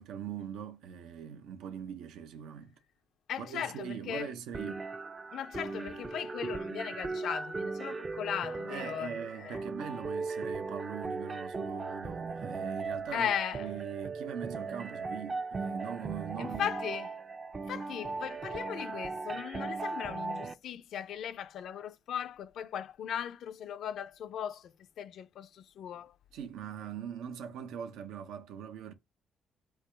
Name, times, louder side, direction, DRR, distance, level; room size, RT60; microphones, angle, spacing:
voice 1, 0.0-2.8 3.4-4.8 8.7-16.7 26.3-28.9, right 8 dB, 90° right, 0.7 m, -41 dB
voice 2, 3.3-4.3 5.3-9.6 13.1-13.7 16.4-17.1 17.7-26.1, left 9 dB, 75° left, 0.4 m, -37 dB
sound 1, 4.5-20.5, right 4 dB, 30° right, 0.4 m, -38 dB
4.7 x 2.3 x 4.8 m
cardioid pair, 90°, 0 cm